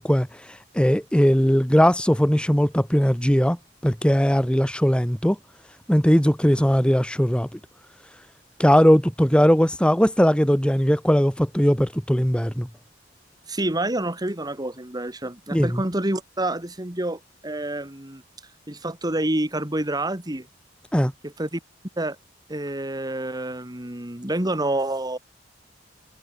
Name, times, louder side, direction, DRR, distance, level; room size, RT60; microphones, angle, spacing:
voice 1, 0.0-3.6 3.8-5.4 5.9-7.6 8.6-12.7 15.5-15.8 20.9-21.1, equal, 5° left, 1.8 m, -19 dB
voice 2, 13.5-18.2 18.7-20.5 21.2-21.6 22.0-22.2 22.5-25.2, right 1 dB, 20° right, 2.2 m, -28 dB
open air
head